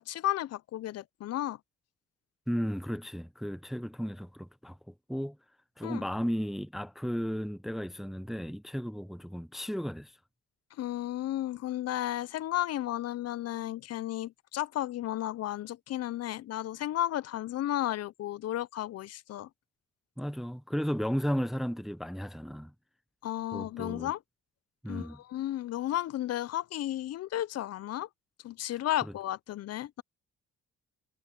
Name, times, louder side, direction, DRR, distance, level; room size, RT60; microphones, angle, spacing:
voice 1, 0.0-1.6 5.8-6.0 10.8-19.5 23.2-24.2 24.9-28.1 28.4-30.0, left 13 dB, 55° left, 0.5 m, -33 dB
voice 2, 2.5-5.4 5.8-10.1 20.2-22.7 23.5-24.1 24.8-25.2 29.0-29.1, equal, ahead, 0.7 m, -34 dB
cardioid pair, 90°, 30 cm